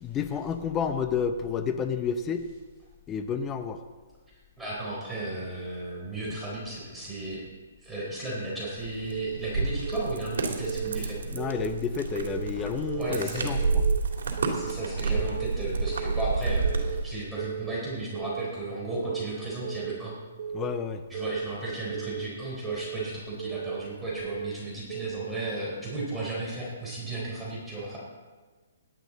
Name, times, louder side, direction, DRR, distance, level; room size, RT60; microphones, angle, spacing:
voice 1, 0.0-2.4 3.1-3.8 11.3-13.8 20.5-21.0, left 7 dB, 15° left, 8 dB, 0.7 m, -30 dB
voice 2, 4.6-7.4 7.8-11.2 12.9-13.6 14.5-20.1 21.1-28.0, right 2 dB, 5° right, -7 dB, 4.2 m, -34 dB
sound 1, 8.8-17.1, right 4 dB, 70° right, 3.1 m, -29 dB
Keyboard (musical) / Alarm, 9.1-9.5 9.9-10.2 10.6-11.0 11.4-11.8 12.1-12.5 12.9-13.3 13.6-14.0 14.4-14.8 15.1-15.5 15.9-16.3 16.6-17.0 17.4-17.8 18.1-18.5 18.9-19.3 19.6-20.0 20.4-20.8 21.1-21.5 21.9-22.3 22.6-23.0 23.4-23.8 24.1-24.5 24.9-25.3, right 8 dB, 45° right, 1.4 m, -35 dB
17.0 x 12.0 x 4.1 m, 1.3 s
hypercardioid pair, 150°, 0 cm